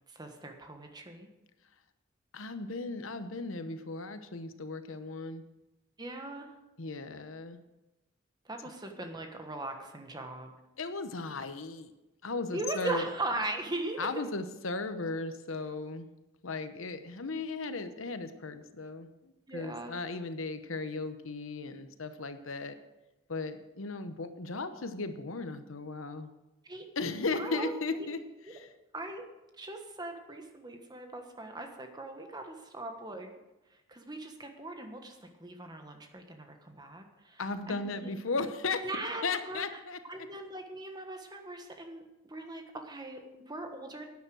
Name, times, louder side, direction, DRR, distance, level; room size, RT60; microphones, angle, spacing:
voice 1, 0.1-1.3 6.0-6.5 8.4-10.5 12.5-14.1 19.5-19.9 26.6-26.9 27.3-27.7 28.0-28.1 28.9-29.2 29.6-33.3 33.7-37.4 37.7-38.1 38.8-39.6 40.1-44.1, right 2 dB, 20° right, 4 dB, 1.4 m, -39 dB
voice 2, 2.3-5.4 6.8-7.6 10.8-11.9 12.2-13.0 14.0-16.1 16.4-22.8 23.3-26.3 27.0-28.2 28.5-28.7 37.4-38.9 39.2-40.0, left 3 dB, 80° left, 10 dB, 1.0 m, -36 dB
11.0 x 9.5 x 6.4 m, 1.0 s
head